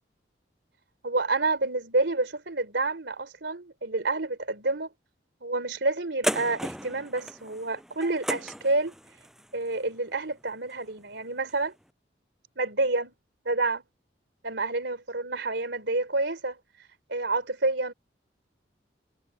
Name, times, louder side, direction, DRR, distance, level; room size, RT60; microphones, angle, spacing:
voice 1, 1.0-4.9 5.4-8.9 9.5-11.7 12.6-13.1 13.4-13.8 14.4-16.6 17.1-17.9, right 2 dB, 75° right, 3.2 m, -28 dB
sound 1, 6.2-11.0 11.5-11.6, equal, ahead, 7.6 m, -35 dB
head